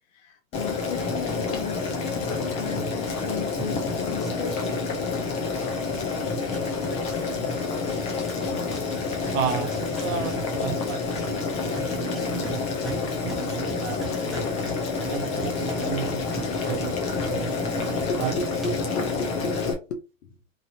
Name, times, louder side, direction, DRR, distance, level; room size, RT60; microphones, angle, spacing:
voice 1, 0.1-4.9 18.1-20.3, left 4 dB, 70° left, 0.8 m, -36 dB
Boiling, 0.5-19.7, left 4 dB, 15° left, 0.5 m, -28 dB
sound 1, 1.5-5.1 5.4-16.9 17.2-18.1 18.5-18.7, right 2 dB, ahead, 0.8 m, -41 dB
voice 2, 9.3-14.0 14.2-14.4 15.1-18.3, right 8 dB, 65° right, 0.7 m, -34 dB
3.0 x 2.6 x 2.6 m
hypercardioid pair, 135°, 40 cm